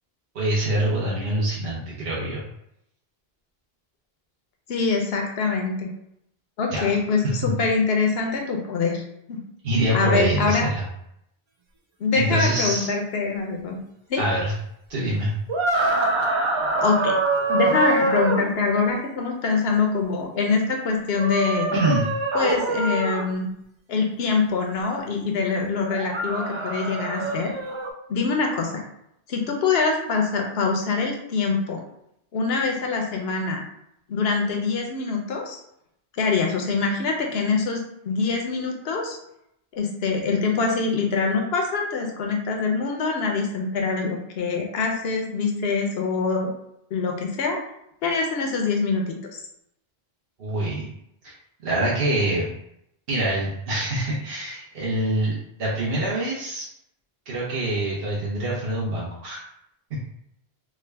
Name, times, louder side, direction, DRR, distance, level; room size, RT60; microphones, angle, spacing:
voice 1, 0.3-2.4 6.7-6.9 7.4-7.5 9.6-10.8 12.1-12.9 14.2-14.5 14.9-15.3 21.7-22.1 50.4-50.9 51.6-52.5 53.1-56.7 57.3-59.4 59.9-60.0, right 1 dB, 65° right, -6 dB, 1.0 m, -25 dB
voice 2, 4.7-5.9 6.6-9.0 9.3-9.4 9.9-10.7 12.0-13.8 14.1-14.2 16.8-17.2 17.5-21.7 22.3-23.5 23.9-27.5 28.1-28.8 29.3-31.8 32.3-33.6 34.1-35.6 36.1-39.2 39.7-46.5 46.9-47.6 48.0-49.4, left 4 dB, 80° left, 2 dB, 0.9 m, -24 dB
sound 1, 15.5-18.5 21.1-23.3 25.9-27.9, right 2 dB, 45° right, 0.3 m, -25 dB
3.6 x 2.1 x 3.3 m, 0.77 s
omnidirectional pair, 1.0 m